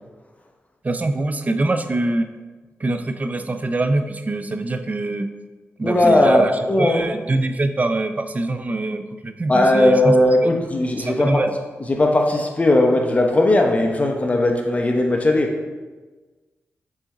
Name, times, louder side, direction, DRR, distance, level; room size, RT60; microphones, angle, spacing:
voice 1, 0.8-2.3 2.8-5.3 5.8-6.5 6.8-10.2 10.4-10.5 11.0-11.5, right 2 dB, 35° right, 8 dB, 0.5 m, -23 dB
voice 2, 5.8-7.1 9.5-11.5 11.9-15.6, left 1 dB, 30° left, 2 dB, 0.8 m, -18 dB
6.5 x 4.2 x 3.7 m, 1.3 s
cardioid pair, 70°, 5 cm